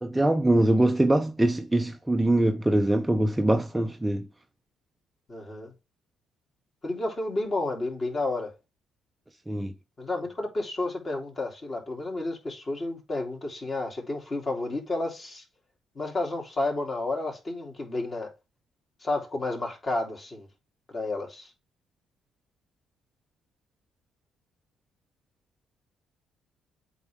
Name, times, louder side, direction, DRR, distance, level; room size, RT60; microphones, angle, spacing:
voice 1, 0.0-4.3 9.5-9.7, right 1 dB, 10° right, 0.6 m, -23 dB
voice 2, 5.3-5.7 6.8-8.5 10.0-15.4 15.9-18.3 19.0-20.5 20.9-21.5, left 2 dB, 30° left, 3.1 m, -31 dB
8.1 x 4.5 x 3.7 m
cardioid pair, 125°, 0 cm